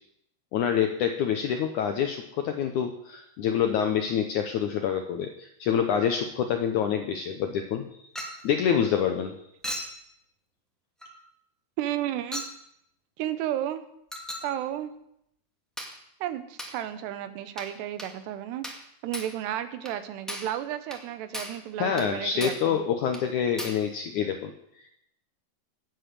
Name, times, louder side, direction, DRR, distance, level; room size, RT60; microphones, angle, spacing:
voice 1, 0.5-8.1 8.4-9.4 21.8-24.5, left 8 dB, 75° left, 6 dB, 1.8 m, -27 dB
Chink clink, 8.2-8.5 9.6-10.0 11.0-11.2 12.3-12.6 14.1-14.5 15.8-16.0 16.6-16.8 17.6-17.7 18.0-18.2 18.6-18.9 19.1-19.4 19.9-20.0 20.3-20.6 20.9-21.0 21.3-21.6 22.0-22.1 22.4-22.7 23.1-23.3 23.6-23.9, equal, ahead, 0.6 m, -37 dB
voice 2, 11.8-12.4 13.2-13.8 14.4-14.9 16.2-18.7 19.0-22.8, right 12 dB, 90° right, 11 dB, 3.1 m, -32 dB
17.5 x 8.0 x 6.7 m, 0.77 s
omnidirectional pair, 4.7 m